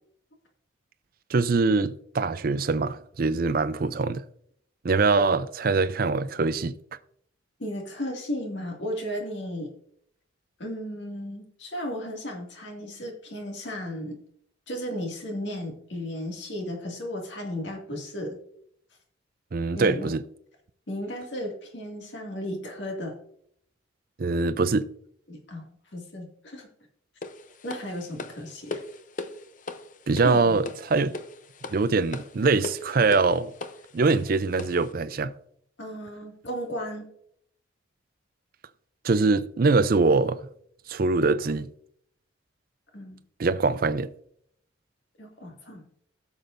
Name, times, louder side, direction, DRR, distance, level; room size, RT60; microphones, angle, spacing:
voice 1, 1.3-4.2 4.8-6.8 19.5-20.2 24.2-24.9 30.1-31.1 31.7-33.5 33.9-35.3 39.0-40.4 40.9-41.7 43.4-44.1, right 3 dB, 45° right, 0.4 m, -23 dB
voice 2, 7.6-9.7 10.6-14.2 14.7-18.4 19.7-20.2 20.9-23.2 25.3-26.7 27.6-28.8 30.2-30.6 35.8-37.1 42.9-43.2 45.2-45.9, equal, 65° left, 2.2 m, -35 dB
sound 1, 27.2-34.9, left 3 dB, 40° left, 0.7 m, -39 dB
16.5 x 7.1 x 2.6 m
head